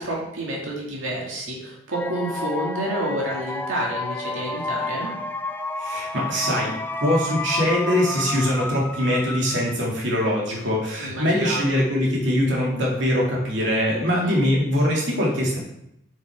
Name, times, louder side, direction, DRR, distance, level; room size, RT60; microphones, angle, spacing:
voice 1, 0.0-5.1 11.0-11.8 14.1-14.4, right 1 dB, 90° right, -4 dB, 2.3 m, -29 dB
sound 1, 1.9-10.0, left 2 dB, 10° left, 0.3 m, -31 dB
voice 2, 5.8-15.6, equal, 65° right, -3 dB, 2.5 m, -22 dB
8.0 x 6.6 x 3.6 m, 0.79 s
head